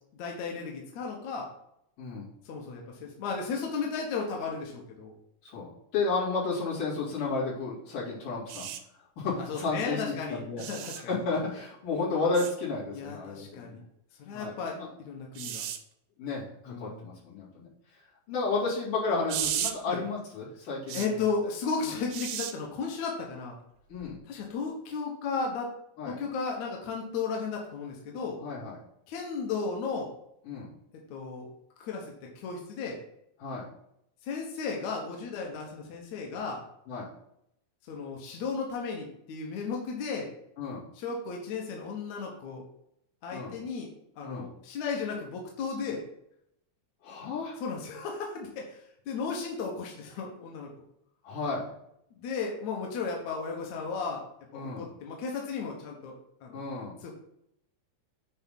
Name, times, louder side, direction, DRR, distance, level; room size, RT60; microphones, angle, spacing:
voice 1, 0.1-1.5 2.5-5.1 9.5-10.4 10.7-11.0 12.9-13.8 14.2-15.6 16.7-17.1 19.9-20.0 20.9-23.6 24.3-25.7 26.0-28.4 29.1-30.1 31.1-31.5 31.8-32.1 32.4-33.0 34.2-36.6 37.9-40.3 40.9-42.6 43.2-43.9 44.2-46.0 47.6-50.7 52.1-54.2 54.5-56.2 56.4-56.6 57.0-57.1, left 5 dB, 70° left, 0 dB, 2.3 m, -34 dB
voice 2, 5.4-8.7 9.2-10.0 10.3-10.6 11.1-13.8 14.3-14.9 16.2-17.7 18.3-21.2 21.8-22.0 23.9-24.2 26.0-26.2 28.4-28.8 30.5-30.7 33.4-33.6 36.9-37.1 40.6-40.8 43.3-43.5 44.2-44.5 47.0-47.6 51.2-51.7 54.5-54.9 56.5-57.0, left 3 dB, 90° left, -8 dB, 4.8 m, -32 dB
sound 1, 8.5-8.8 10.6-11.0 12.3-12.5 15.4-15.8 19.3-19.7 20.9-21.1 22.1-22.5 24.0-24.2, right 10 dB, 80° right, 2.1 m, -34 dB
9.5 x 3.5 x 5.9 m, 0.76 s
omnidirectional pair, 3.6 m